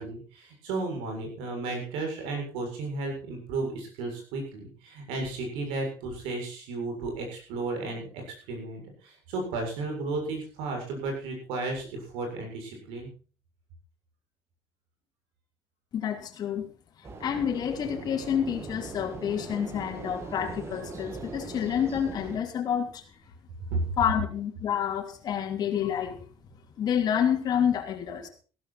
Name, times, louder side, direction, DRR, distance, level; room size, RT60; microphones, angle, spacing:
voice 1, 0.0-8.2 8.5-13.1 23.7-24.0, right 3 dB, 85° right, 2 dB, 7.2 m, -33 dB
voice 2, 15.9-16.7 17.0-23.0 24.0-26.2 26.8-28.3, left 9 dB, 45° left, 2 dB, 3.1 m, -28 dB
sound 1, 17.0-22.4, right 3 dB, 30° right, 2.3 m, -40 dB
15.5 x 13.5 x 4.4 m, 0.38 s
cardioid pair, 120°, 9 cm